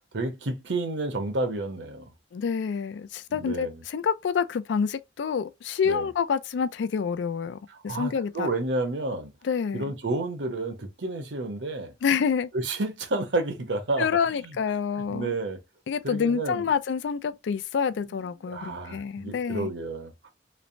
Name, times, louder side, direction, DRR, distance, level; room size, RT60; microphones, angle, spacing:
voice 1, 0.1-2.1 3.3-3.8 5.8-6.1 7.7-9.3 9.7-11.9 12.5-14.1 14.4-14.6 15.0-15.6 16.0-16.6 18.1-20.3, right 2 dB, 80° right, 0.8 m, -31 dB
voice 2, 2.3-7.6 7.8-8.5 9.4-9.8 12.0-12.5 14.0-15.4 15.9-19.7, left 6 dB, 75° left, 0.3 m, -27 dB
3.1 x 2.0 x 2.6 m
head